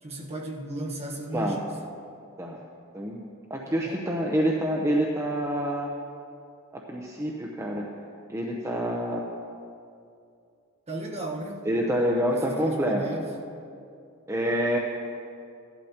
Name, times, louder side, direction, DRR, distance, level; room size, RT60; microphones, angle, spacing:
voice 1, 0.0-1.7 3.7-4.0 10.9-11.6 12.3-13.3, right 1 dB, 30° right, -1 dB, 1.2 m, -35 dB
voice 2, 3.5-5.9 6.7-7.9 8.3-9.3 11.7-13.0 14.3-14.8, equal, 15° right, -2 dB, 0.7 m, -27 dB
16.0 x 12.0 x 2.9 m, 2.5 s
head